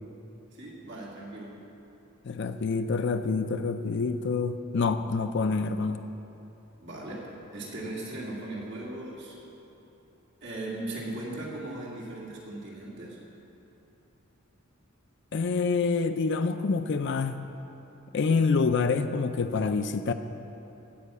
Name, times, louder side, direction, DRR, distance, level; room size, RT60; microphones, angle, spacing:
voice 1, 0.5-1.6 6.8-9.4 10.4-13.2, right 2 dB, 55° right, -4 dB, 2.1 m, -38 dB
voice 2, 2.2-6.0 15.3-17.4 18.1-20.1, left 4 dB, 55° left, 9 dB, 0.4 m, -27 dB
15.5 x 5.5 x 8.2 m, 3.0 s
head